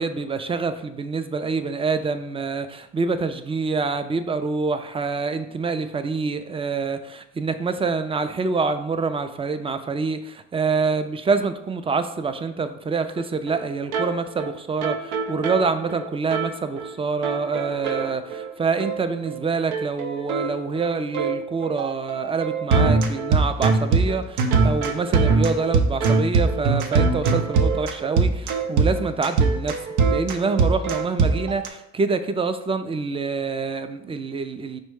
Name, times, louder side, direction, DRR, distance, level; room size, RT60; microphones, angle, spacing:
voice 1, 0.0-29.8 30.1-34.8, right 4 dB, 20° right, 9 dB, 0.3 m, -26 dB
sound 1, 13.2-13.3 13.5-13.6 13.9-14.1 14.4-14.5 14.8-16.5 16.8-16.9 17.2-18.5 18.8-19.0 19.3-19.4 19.7-31.7, right 4 dB, 90° right, 0.6 m, -22 dB
5.2 x 2.2 x 4.7 m, 0.83 s
cardioid pair, 90°, 30 cm